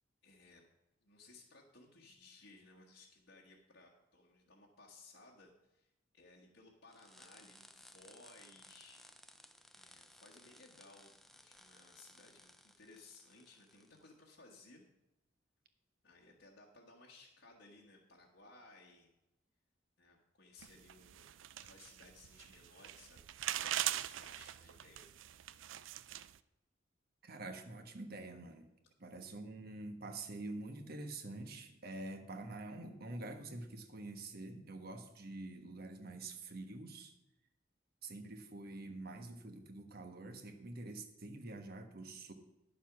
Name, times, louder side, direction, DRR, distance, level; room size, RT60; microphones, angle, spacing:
voice 1, 0.2-0.6 1.0-9.0 9.7-14.8 16.0-19.1 20.0-21.3 21.6-23.2 24.0-25.1, left 3 dB, 70° left, -3 dB, 1.4 m, -60 dB
sound 1, 6.9-14.1, left 1 dB, ahead, 0.5 m, -61 dB
sound 2, 20.6-26.4, right 12 dB, 90° right, 0.4 m, -42 dB
voice 2, 27.2-28.7 29.0-37.1 38.0-42.3, right 2 dB, 55° right, 7 dB, 1.2 m, -46 dB
10.5 x 7.1 x 5.9 m, 0.92 s
head